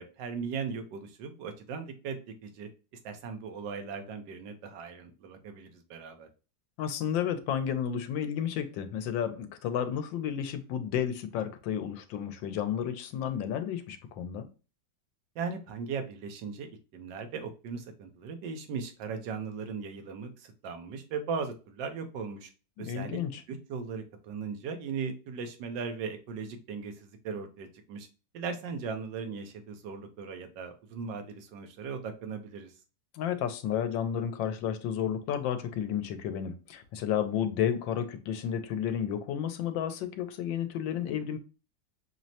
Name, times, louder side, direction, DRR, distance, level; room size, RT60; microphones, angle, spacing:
voice 1, 0.0-2.7 3.0-6.3 15.3-16.7 16.9-22.5 22.8-23.2 23.5-28.1 28.3-32.7, right 5 dB, 75° right, 1.4 m, -38 dB
voice 2, 6.8-14.5 22.8-23.4 33.1-41.4, left 9 dB, 85° left, 1.3 m, -32 dB
6.1 x 2.1 x 2.7 m
omnidirectional pair, 2.0 m